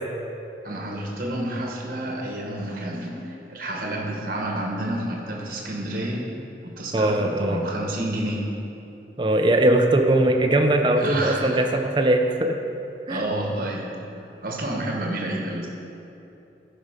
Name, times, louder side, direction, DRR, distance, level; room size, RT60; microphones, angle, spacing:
voice 1, 0.6-6.2 6.6-8.5 11.0-11.6 13.1-13.9 14.1-15.7, right 1 dB, 50° right, 0 dB, 1.2 m, -29 dB
voice 2, 6.9-7.6 9.2-12.6 13.1-13.3, right 1 dB, 25° right, 5 dB, 0.5 m, -20 dB
10.5 x 5.1 x 5.1 m, 2.9 s
head